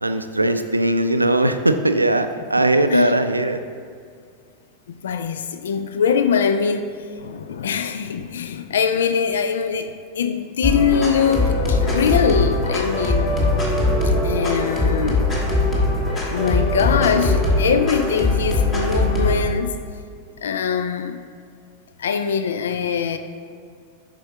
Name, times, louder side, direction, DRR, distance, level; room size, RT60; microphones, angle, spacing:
voice 1, 0.0-3.6, right 1 dB, 85° right, 9 dB, 0.4 m, -19 dB
voice 2, 4.9-13.3 14.0-15.2 16.3-19.8 20.4-21.2 22.0-23.2, left 7 dB, 65° left, 9 dB, 0.4 m, -22 dB
sound 1, 10.6-19.4, left 2 dB, 25° left, 1.8 m, -21 dB
8.5 x 5.6 x 3.7 m, 2.3 s
figure-of-eight pair, 90°, 0 cm